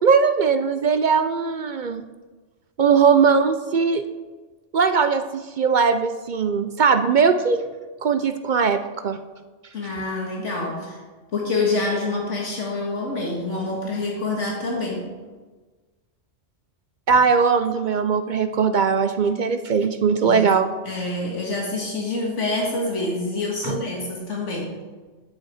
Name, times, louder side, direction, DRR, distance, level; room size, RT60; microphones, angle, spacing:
voice 1, 0.0-2.0 2.8-4.0 4.7-7.6 8.0-9.2 17.1-20.7 23.6-23.8, right 5 dB, 55° right, 9 dB, 0.5 m, -20 dB
voice 2, 9.7-11.0 11.3-15.1 20.2-20.4 20.9-24.7, left 2 dB, 75° left, -2 dB, 2.1 m, -26 dB
10.0 x 8.1 x 4.9 m, 1.3 s
omnidirectional pair, 1.3 m